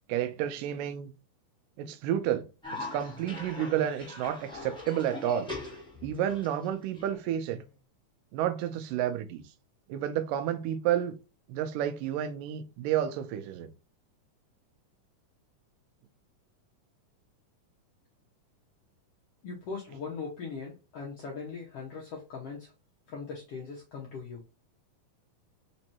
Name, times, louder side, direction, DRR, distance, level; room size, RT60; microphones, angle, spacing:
voice 1, 0.1-1.1 1.8-2.5 2.8-5.5 6.0-7.6 8.3-9.5 9.9-11.2 11.5-13.7, right 10 dB, 80° right, 2.2 m, -30 dB
Cough, 2.6-7.7, left 2 dB, 5° left, 0.3 m, -42 dB
voice 2, 19.4-22.7 23.1-24.4, left 5 dB, 75° left, 1.4 m, -40 dB
5.2 x 3.2 x 2.8 m
omnidirectional pair, 3.9 m